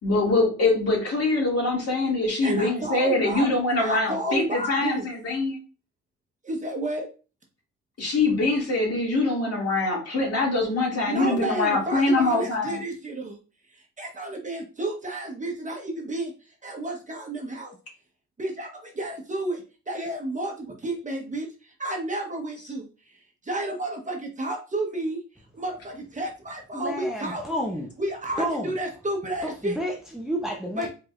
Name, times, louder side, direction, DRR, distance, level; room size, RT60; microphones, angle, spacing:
voice 1, 0.0-5.6 8.0-12.8, left 2 dB, 55° left, 2.5 m, -24 dB
voice 2, 2.4-3.5 3.8-5.1 6.4-7.1 11.0-13.4 13.7-16.3 16.6-17.8 18.4-22.8 23.4-25.2 25.5-27.4 28.0-29.8 30.7-30.9, right 1 dB, 25° right, 1.2 m, -31 dB
voice 3, 26.7-27.9 28.4-28.7 29.4-30.9, equal, ahead, 0.8 m, -30 dB
4.8 x 3.8 x 2.5 m
cardioid pair, 90°, 30 cm